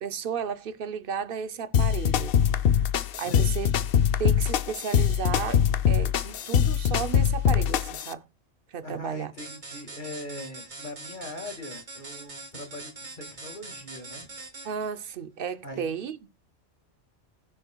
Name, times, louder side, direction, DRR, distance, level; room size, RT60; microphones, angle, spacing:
voice 1, 0.0-2.4 3.2-3.7 4.2-5.6 5.9-8.2 8.7-9.3 14.6-16.2, right 7 dB, 55° right, 0.8 m, -33 dB
sound 1, 1.7-8.1, left 9 dB, 60° left, 0.7 m, -23 dB
voice 2, 3.2-3.6 8.8-14.3 15.6-15.9, left 1 dB, 40° left, 2.0 m, -40 dB
sound 2, 9.4-14.9, right 3 dB, 40° right, 1.3 m, -43 dB
20.0 x 6.7 x 2.2 m
omnidirectional pair, 1.2 m